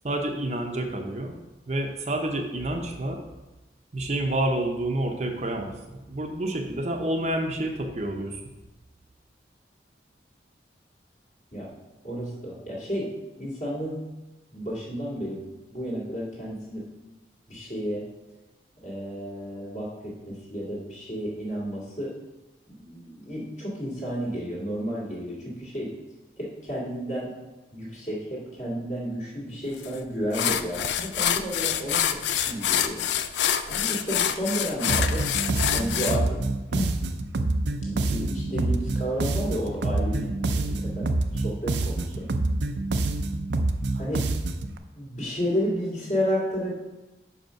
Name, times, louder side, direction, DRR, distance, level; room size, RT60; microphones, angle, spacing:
voice 1, 0.0-1.4 1.7-3.2 3.9-8.5, right 1 dB, 40° right, 3 dB, 0.7 m, -29 dB
voice 2, 12.0-13.1 13.4-14.0 14.5-15.4 15.7-16.9 17.5-18.0 18.8-22.2 22.7-25.9 26.4-27.3 27.7-33.1 33.7-35.3 35.7-36.4 36.7-37.0 37.8-42.3 43.9-44.3 44.9-46.7, equal, 45° left, -5 dB, 2.1 m, -32 dB
sound 1, 29.8-30.0 30.3-36.2, left 9 dB, 80° left, 0.4 m, -26 dB
sound 2, 34.9-44.7, right 2 dB, 80° right, 0.5 m, -27 dB
5.3 x 5.0 x 5.7 m, 1.1 s
head